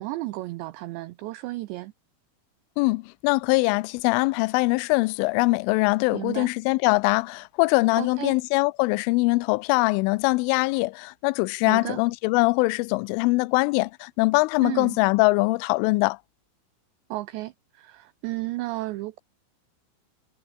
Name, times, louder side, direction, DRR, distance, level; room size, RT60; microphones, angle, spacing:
voice 1, 0.0-1.9 6.1-6.5 7.9-8.4 11.6-12.0 14.6-15.0 17.1-19.2, right 18 dB, 85° right, 2.5 m, -33 dB
voice 2, 2.8-16.2, left 25 dB, 80° left, 3.0 m, -22 dB
omnidirectional pair, 6.0 m